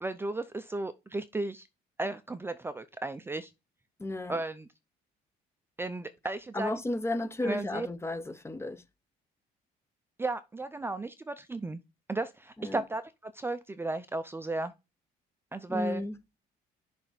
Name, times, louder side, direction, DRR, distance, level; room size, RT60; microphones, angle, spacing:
voice 1, 0.0-1.7 2.0-3.5 4.3-4.7 5.8-6.8 7.4-7.9 10.2-11.8 12.1-14.7 15.5-16.0, right 2 dB, 15° right, 0.6 m, -34 dB
voice 2, 4.0-4.4 6.5-8.8 12.6-12.8 15.7-16.2, left 2 dB, 15° left, 0.8 m, -33 dB
6.6 x 3.5 x 5.8 m
cardioid pair, 110°, 17 cm